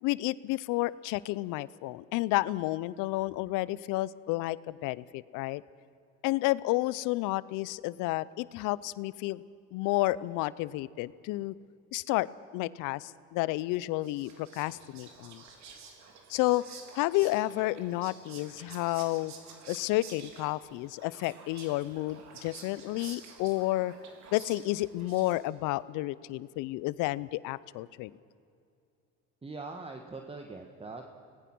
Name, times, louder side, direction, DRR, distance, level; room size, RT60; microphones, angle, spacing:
voice 1, 0.0-5.6 6.2-9.4 9.7-11.5 11.9-12.3 12.5-15.4 16.3-16.6 16.9-19.3 19.7-23.9 24.3-28.1, left 18 dB, 75° left, 19 dB, 0.7 m, -31 dB
Whispering, 13.7-25.7, right 5 dB, 60° right, 3.7 m, -50 dB
voice 2, 29.4-31.1, right 3 dB, 20° right, 4 dB, 1.6 m, -42 dB
26.0 x 19.0 x 6.2 m, 2.5 s
supercardioid pair, 90°, 31 cm